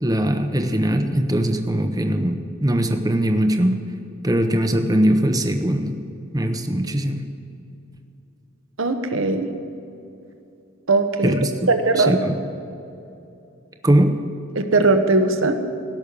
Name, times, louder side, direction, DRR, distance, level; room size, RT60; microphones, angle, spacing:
voice 1, 0.0-3.8 4.2-6.0 6.3-7.2 11.2-11.5 12.0-12.4 13.8-14.2, right 1 dB, 15° right, 6 dB, 0.7 m, -20 dB
voice 2, 8.8-9.5 10.9-11.4 11.7-12.2 14.5-15.6, right 3 dB, 70° right, 7 dB, 1.0 m, -19 dB
17.0 x 6.4 x 8.4 m, 2.7 s
head